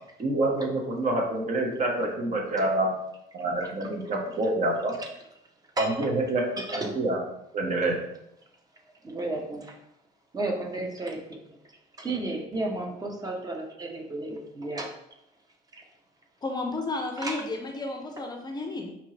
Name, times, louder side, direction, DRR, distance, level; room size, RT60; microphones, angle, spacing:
voice 1, 0.2-2.9 3.3-5.0 5.8-6.4 6.7-7.2 7.5-8.0, right 2 dB, 45° right, 1 dB, 1.1 m, -27 dB
voice 2, 5.8-6.1 6.6-6.9 9.0-9.8 10.3-11.4 12.0-14.9 15.7-15.8 17.2-17.4, right 2 dB, 20° right, 2 dB, 0.9 m, -33 dB
voice 3, 16.4-18.9, left 2 dB, 25° left, 3 dB, 0.5 m, -32 dB
5.1 x 2.9 x 3.2 m, 0.81 s
cardioid pair, 110°, 17 cm